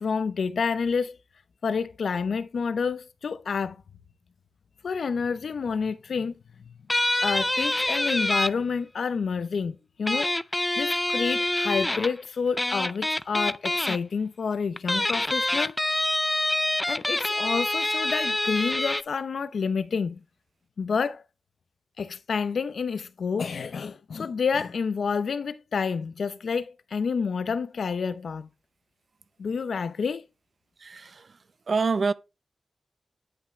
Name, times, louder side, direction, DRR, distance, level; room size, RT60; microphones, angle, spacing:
voice 1, 0.0-1.1 1.6-3.8 4.8-6.3 7.2-10.3 10.8-15.8 16.9-20.2 20.8-21.2 22.0-28.5 29.4-30.2, left 5 dB, 85° left, 0.7 m, -29 dB
sound 1, 6.9-8.5 10.1-12.1 12.6-14.0 14.8-19.0, left 1 dB, 15° left, 0.4 m, -26 dB
voice 2, 30.8-31.4 31.7-32.1, right 4 dB, 60° right, 0.6 m, -26 dB
9.9 x 5.8 x 3.2 m
wide cardioid pair, 110°, 0 cm